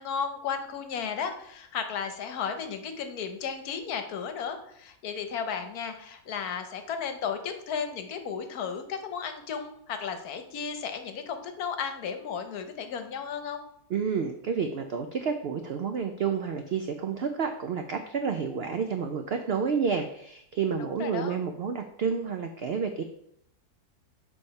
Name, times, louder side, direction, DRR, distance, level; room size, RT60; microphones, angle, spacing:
voice 1, 0.0-13.6 20.8-21.4, left 6 dB, 75° left, 7 dB, 1.3 m, -34 dB
voice 2, 13.9-23.0, right 6 dB, 90° right, 6 dB, 0.5 m, -30 dB
6.9 x 3.4 x 5.2 m, 0.72 s
omnidirectional pair, 1.7 m